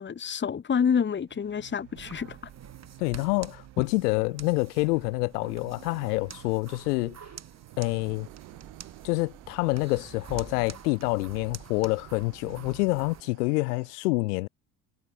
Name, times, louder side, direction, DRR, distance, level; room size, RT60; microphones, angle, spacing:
voice 1, 0.0-2.4, left 7 dB, 25° left, 1.1 m, -28 dB
sound 1, 1.3-13.9, right 26 dB, 75° right, 7.4 m, -52 dB
sound 2, 2.0-13.2, right 7 dB, 35° right, 3.6 m, -47 dB
voice 2, 3.0-7.2 7.8-8.3 9.0-14.5, left 24 dB, 85° left, 0.6 m, -27 dB
hypercardioid pair, 65°, 45 cm